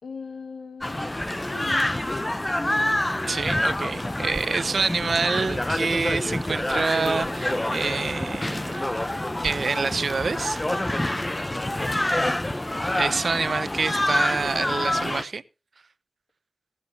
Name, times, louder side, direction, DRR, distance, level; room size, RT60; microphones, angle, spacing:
voice 1, 0.0-2.4 11.7-12.0, left 4 dB, 85° left, 2.2 m, -40 dB
sound 1, 0.8-15.2, left 1 dB, 20° left, 0.9 m, -27 dB
voice 2, 3.3-8.9 9.4-10.6 12.9-15.4, right 4 dB, 70° right, 0.7 m, -27 dB
sound 2, 4.3-9.5, right 2 dB, 40° right, 1.7 m, -46 dB
20.0 x 8.9 x 2.9 m
cardioid pair, 45°, 0 cm